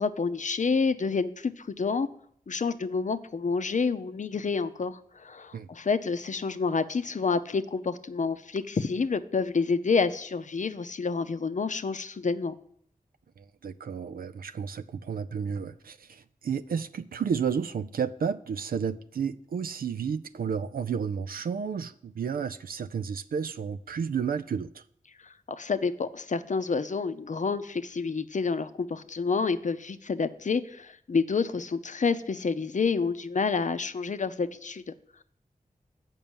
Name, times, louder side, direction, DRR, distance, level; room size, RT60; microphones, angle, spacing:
voice 1, 0.0-2.1 2.5-12.5 25.5-34.8, left 4 dB, 55° left, 0.6 m, -28 dB
voice 2, 13.4-24.8, right 6 dB, 85° right, 0.4 m, -32 dB
7.4 x 5.4 x 7.0 m
cardioid pair, 40°, 15 cm